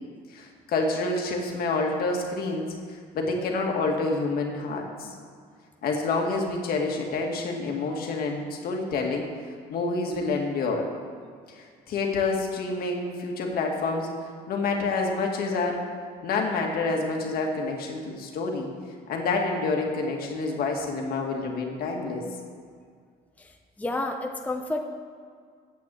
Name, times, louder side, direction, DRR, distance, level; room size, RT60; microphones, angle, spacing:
voice 1, 0.3-2.7 3.1-5.1 5.8-9.3 9.7-10.9 11.6-14.1 14.5-15.8 16.2-18.7 19.1-22.2, left 3 dB, 65° left, 1 dB, 2.1 m, -28 dB
voice 2, 23.4-24.8, left 2 dB, 10° left, 3 dB, 0.8 m, -31 dB
9.6 x 8.5 x 7.8 m, 2.1 s
cardioid pair, 110°, 17 cm